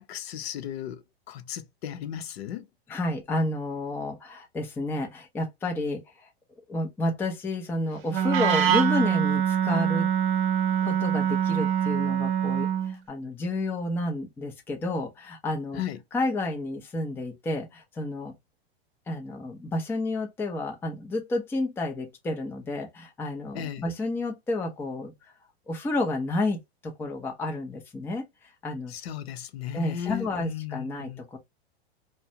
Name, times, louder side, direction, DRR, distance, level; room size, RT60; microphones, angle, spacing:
voice 1, 0.0-2.7 15.8-16.0 23.5-23.9 28.9-31.2, left 10 dB, 70° left, 0.6 m, -35 dB
voice 2, 2.9-6.3 6.7-10.1 10.8-15.8 16.1-18.3 19.1-25.1 25.7-28.3 28.6-29.0 29.7-31.4, left 2 dB, 5° left, 0.4 m, -30 dB
Wind instrument woodwind instrument, 8.1-13.0, right 9 dB, 65° right, 0.7 m, -24 dB
2.4 x 2.1 x 2.7 m
hypercardioid pair, 125°, 32 cm